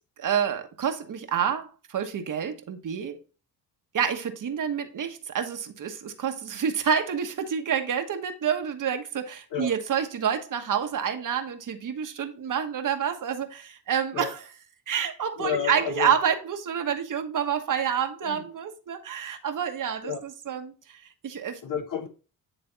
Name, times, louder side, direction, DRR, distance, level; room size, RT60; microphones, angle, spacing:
voice 1, 0.2-3.2 3.9-14.4 14.9-21.6, right 8 dB, 55° right, 1.2 m, -28 dB
voice 2, 15.4-16.1 18.2-18.5 20.0-20.2 21.6-22.1, left 7 dB, 55° left, 1.6 m, -31 dB
10.0 x 3.4 x 3.9 m
cardioid pair, 85°, 38 cm